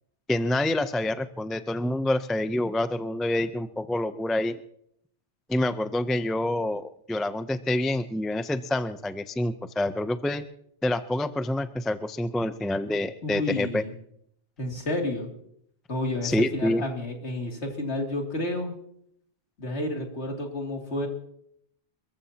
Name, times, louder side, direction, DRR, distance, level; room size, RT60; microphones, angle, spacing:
voice 1, 0.3-4.6 5.5-10.4 10.8-13.8 16.2-16.8, left 1 dB, ahead, 10 dB, 0.4 m, -27 dB
voice 2, 13.2-13.9 14.6-15.3 15.9-18.7 19.6-21.1, left 1 dB, 65° left, 1 dB, 3.0 m, -30 dB
28.5 x 14.5 x 2.9 m, 0.71 s
omnidirectional pair, 1.2 m